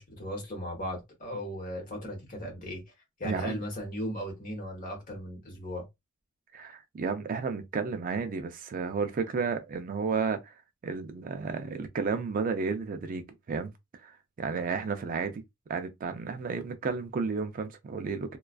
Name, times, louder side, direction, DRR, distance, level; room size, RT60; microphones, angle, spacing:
voice 1, 0.0-2.8 3.2-5.8, equal, 40° left, 1.1 m, -37 dB
voice 2, 3.2-3.6 6.5-15.4 15.7-18.4, right 5 dB, 40° right, 0.3 m, -32 dB
2.3 x 2.3 x 2.3 m
head